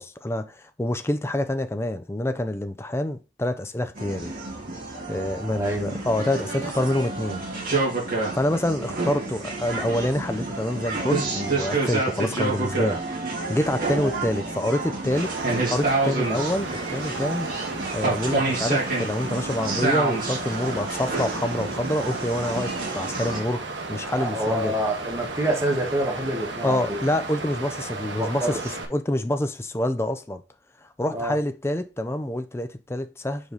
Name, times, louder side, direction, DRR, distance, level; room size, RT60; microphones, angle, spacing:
voice 1, 0.0-4.3 5.1-7.4 8.1-13.0 13.5-15.3 15.7-17.5 17.9-24.7 26.6-28.6 28.9-30.4 30.8-33.5, left 1 dB, 15° left, 0.5 m, -27 dB
sound 1, 4.0-23.4, right 3 dB, 50° right, 2.5 m, -28 dB
voice 2, 5.5-5.9 13.9-14.2 24.2-27.0 28.1-28.6 31.1-31.4, right 1 dB, 15° right, 1.5 m, -27 dB
Water, 15.1-28.9, right 3 dB, 85° right, 1.2 m, -35 dB
5.2 x 5.0 x 4.0 m
head